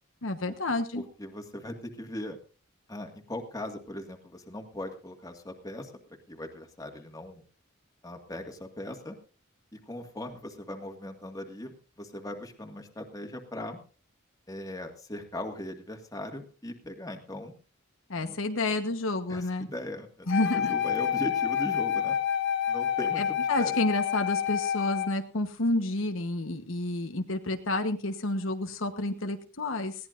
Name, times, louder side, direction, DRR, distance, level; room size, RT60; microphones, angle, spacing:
voice 1, 0.2-1.0 18.1-19.7 20.3-20.7 23.2-29.9, left 2 dB, 70° left, 6 dB, 1.2 m, -30 dB
voice 2, 0.9-2.4 2.9-5.9 6.3-7.4 8.0-9.2 9.7-13.8 14.5-17.5 18.2-18.4 19.3-22.2 22.7-23.7, left 1 dB, 15° left, 4 dB, 1.9 m, -39 dB
Wind instrument woodwind instrument, 20.3-25.2, left 9 dB, 55° left, 1.3 m, -28 dB
20.5 x 17.0 x 2.6 m, 0.37 s
head